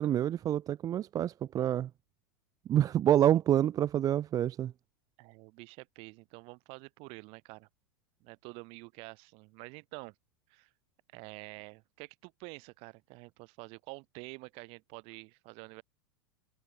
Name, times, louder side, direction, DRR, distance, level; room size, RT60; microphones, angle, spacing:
voice 1, 0.0-1.9 2.7-4.7, right 11 dB, 30° right, 0.6 m, -27 dB
voice 2, 5.2-7.7 8.2-10.1 10.5-10.7 11.1-15.8, right 28 dB, 55° right, 6.1 m, -48 dB
hypercardioid pair, 115°, 12 cm